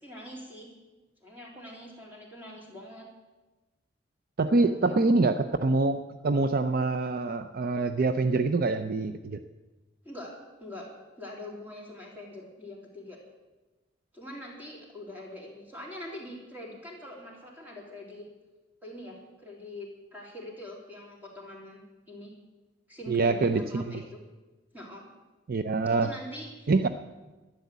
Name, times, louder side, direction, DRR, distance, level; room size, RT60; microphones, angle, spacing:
voice 1, 0.0-0.7 1.2-3.1 4.4-5.0 10.0-10.9 11.2-13.2 14.1-18.2 18.8-21.8 22.1-22.3 22.9-24.2 24.7-25.0 25.9-26.7, left 1 dB, 10° right, -3 dB, 3.7 m, -43 dB
voice 2, 4.4-9.4 23.1-23.8 25.5-26.1 26.7-26.9, right 3 dB, 50° right, 9 dB, 0.5 m, -25 dB
12.0 x 10.5 x 8.2 m, 1.2 s
head